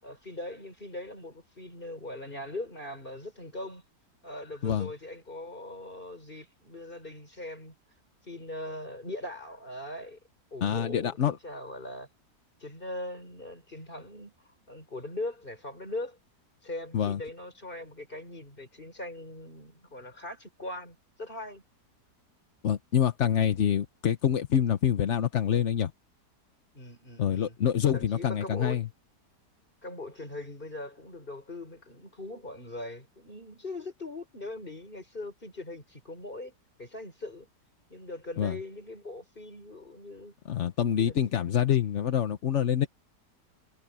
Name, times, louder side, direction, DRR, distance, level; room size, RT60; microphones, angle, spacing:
voice 1, 0.0-3.8 4.2-7.7 8.2-10.2 10.5-12.1 12.6-14.3 14.7-16.2 16.6-21.6 26.7-27.6 27.9-28.8 29.8-36.5 36.8-37.5 37.9-40.3 40.9-41.5 42.8-42.9, left 2 dB, 30° left, 6.1 m, -40 dB
voice 2, 10.6-11.4 16.9-17.2 22.6-25.9 27.2-28.9 38.4-38.6 40.5-42.9, left 9 dB, 50° left, 1.1 m, -26 dB
omnidirectional pair, 1.8 m